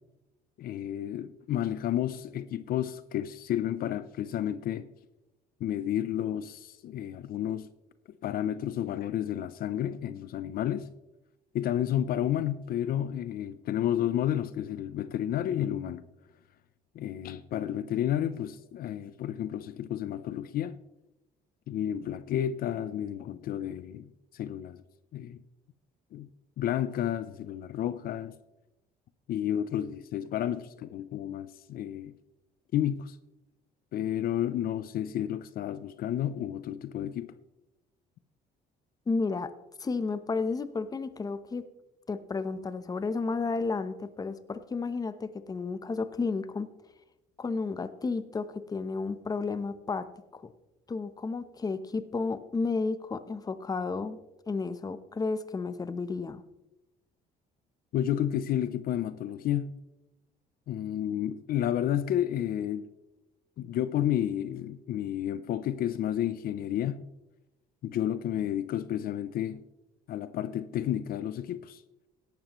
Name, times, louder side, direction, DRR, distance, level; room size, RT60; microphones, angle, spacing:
voice 1, 0.6-4.9 5.6-7.7 8.2-10.9 11.5-16.0 16.9-20.8 21.7-24.8 25.1-25.4 26.1-26.3 26.6-28.3 29.3-32.1 32.7-33.2 33.9-37.3 57.9-59.7 60.7-62.9 63.6-67.0 67.8-69.6 70.1-71.8, left 11 dB, 60° left, 0.6 m, -31 dB
voice 2, 39.1-39.5 39.8-41.6 42.1-46.7 47.4-50.1 50.3-50.5 50.9-54.2 54.5-56.4, left 4 dB, 20° left, 0.8 m, -32 dB
16.5 x 12.0 x 3.0 m
cardioid pair, 110°, 17 cm